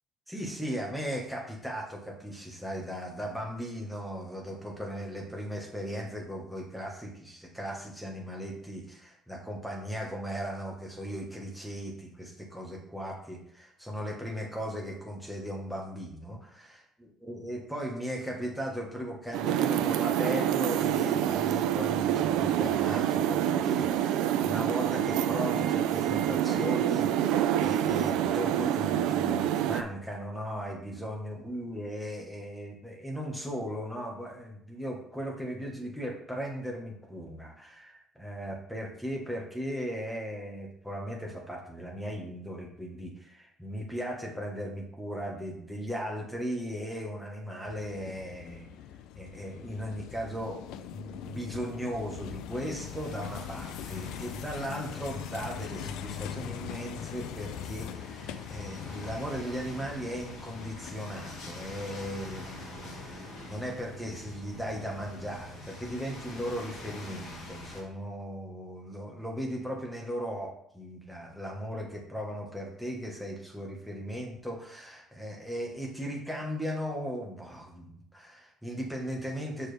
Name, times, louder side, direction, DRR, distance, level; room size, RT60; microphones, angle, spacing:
voice 1, 0.3-16.4 17.0-48.7 49.1-79.7, equal, ahead, -1 dB, 1.2 m, -37 dB
sound 1, 19.3-29.8, right 11 dB, 85° right, 0.4 m, -27 dB
sound 2, 47.6-62.7, left 10 dB, 75° left, 0.4 m, -42 dB
sound 3, 52.7-67.8, left 2 dB, 60° left, 2.8 m, -45 dB
6.8 x 6.0 x 3.3 m, 0.73 s
cardioid pair, 180°, 0 cm